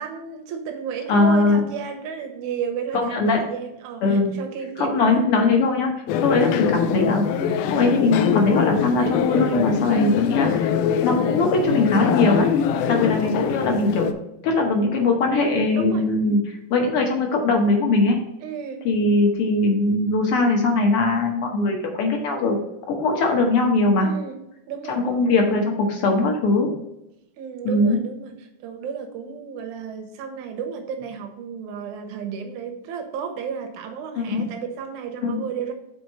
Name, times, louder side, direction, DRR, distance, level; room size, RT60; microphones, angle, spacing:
voice 1, 0.0-5.3 6.3-6.5 12.7-13.1 15.7-16.1 18.4-18.9 24.0-24.4 24.7-25.2 27.4-35.7, right 7 dB, 75° right, 4 dB, 2.2 m, -33 dB
voice 2, 1.1-1.6 2.9-3.4 4.0-4.3 4.8-5.9 6.2-7.3 7.7-10.7 11.0-12.5 12.9-14.1 14.4-16.4 16.7-18.2 18.8-22.6 22.9-24.1 24.9-26.7 27.6-28.0 34.2-34.4 35.2-35.4, left 3 dB, 60° left, 2 dB, 1.6 m, -20 dB
sound 1, 6.1-14.1, left 7 dB, 85° left, 2.0 m, -23 dB
6.2 x 4.2 x 5.4 m, 0.87 s
omnidirectional pair, 3.6 m